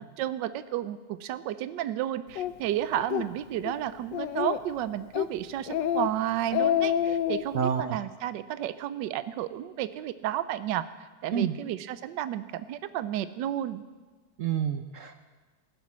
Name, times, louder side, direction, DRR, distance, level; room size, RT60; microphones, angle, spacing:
voice 1, 0.2-10.8 11.2-13.8, right 12 dB, 80° right, 13 dB, 1.3 m, -32 dB
Speech, 2.4-2.5 3.0-3.3 3.6-3.7 4.1-4.7 5.1-5.3 5.7-6.1 6.4-7.4, left 10 dB, 80° left, 1.2 m, -27 dB
voice 2, 7.5-8.0 11.3-11.5 14.4-15.1, right 8 dB, 65° right, 8 dB, 0.8 m, -28 dB
15.5 x 11.5 x 6.1 m, 1.3 s
omnidirectional pair, 2.0 m